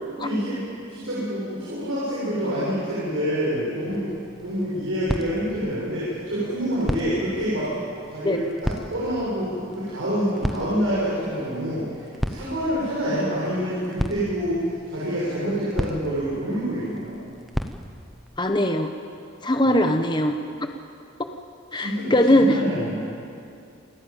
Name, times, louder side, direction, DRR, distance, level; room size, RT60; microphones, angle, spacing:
voice 1, 0.1-4.1 4.4-7.7 8.1-17.2 19.6-19.7 21.7-23.2, equal, 65° right, -9 dB, 7.5 m, -27 dB
sound 1, 3.9-18.4, equal, ahead, 1.0 m, -35 dB
voice 2, 18.4-18.9 19.4-20.3 21.7-22.6, left 1 dB, 20° left, 6 dB, 1.1 m, -20 dB
28.0 x 14.5 x 9.1 m, 2.5 s
head